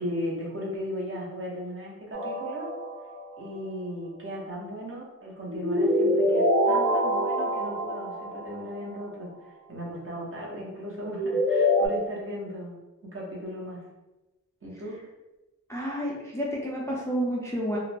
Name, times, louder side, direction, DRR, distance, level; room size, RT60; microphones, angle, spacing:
voice 1, 0.0-2.7 3.4-9.3 9.7-12.7 13.0-13.8 14.6-15.0, equal, 40° right, -3 dB, 0.8 m, -36 dB
sound 1, 2.1-3.2 5.5-8.8 11.1-11.9, equal, 65° right, 1.0 m, -25 dB
voice 2, 15.7-17.8, equal, 10° left, -5 dB, 0.5 m, -30 dB
2.4 x 2.0 x 3.2 m, 1.0 s
wide cardioid pair, 100°, 33 cm